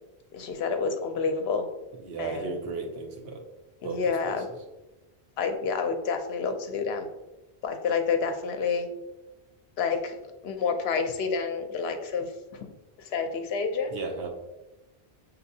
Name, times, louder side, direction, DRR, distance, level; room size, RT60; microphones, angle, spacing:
voice 1, 0.3-1.7 2.2-2.6 3.8-4.5 5.4-7.1 7.6-8.9 9.8-10.1 10.4-12.3 12.5-12.7 13.1-13.9, left 5 dB, 75° left, 6 dB, 0.8 m, -28 dB
voice 2, 2.0-3.4 3.8-4.3 13.9-14.3, right 4 dB, 70° right, 3 dB, 0.9 m, -35 dB
5.9 x 2.8 x 2.7 m, 1.0 s
omnidirectional pair, 1.1 m